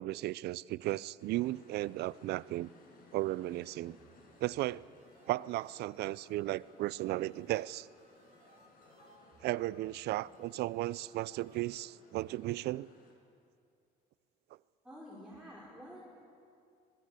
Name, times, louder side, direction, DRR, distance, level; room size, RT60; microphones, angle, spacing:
voice 1, 0.0-2.7 3.1-4.0 4.4-4.8 5.3-7.9 9.4-12.9, right 16 dB, 75° right, 21 dB, 0.5 m, -35 dB
sound 1, 1.2-13.1, left 2 dB, 55° left, 5.8 m, -62 dB
sound 2, 4.0-11.8, right 3 dB, 45° right, 4.7 m, -66 dB
voice 2, 14.8-16.0, equal, 5° right, -6 dB, 5.5 m, -49 dB
24.5 x 21.0 x 8.2 m, 2.3 s
cardioid pair, 110°, 17 cm